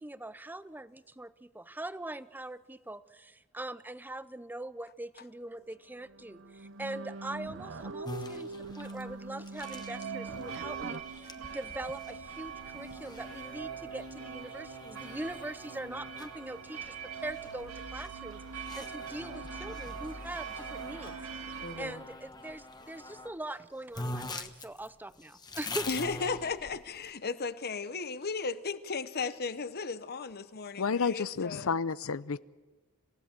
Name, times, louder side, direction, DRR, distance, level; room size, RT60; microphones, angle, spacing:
voice 1, 0.0-16.9 17.2-21.1 21.4-25.9, right 1 dB, 10° right, 0.6 m, -42 dB
sound 1, 5.6-5.7 6.0-11.0, right 3 dB, 60° right, 0.8 m, -42 dB
sound 2, 8.0-21.2 21.9-23.3 23.6-23.7 23.9-27.1, left 2 dB, 20° left, 1.1 m, -45 dB
sound 3, 9.5-22.0, right 6 dB, 80° right, 2.3 m, -42 dB
voice 2, 21.6-22.0 25.9-31.8, left 4 dB, 50° left, 0.9 m, -35 dB
voice 3, 30.8-32.5, left 5 dB, 70° left, 0.6 m, -31 dB
27.0 x 16.0 x 7.5 m
head